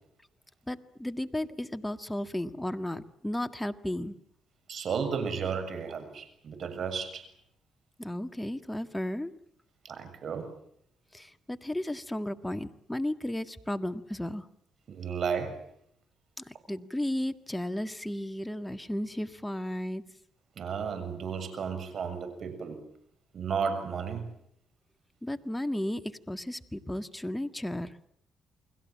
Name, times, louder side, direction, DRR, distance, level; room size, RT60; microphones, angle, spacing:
voice 1, 0.7-4.2 8.0-9.3 11.1-14.5 16.4-20.0 25.2-27.9, left 1 dB, 10° left, 9 dB, 1.8 m, -34 dB
voice 2, 4.7-7.3 9.8-10.5 14.9-15.6 20.6-22.8 23.3-24.3, right 6 dB, 55° right, 10 dB, 6.9 m, -33 dB
30.0 x 21.5 x 7.5 m, 0.71 s
cardioid pair, 90°, 0 cm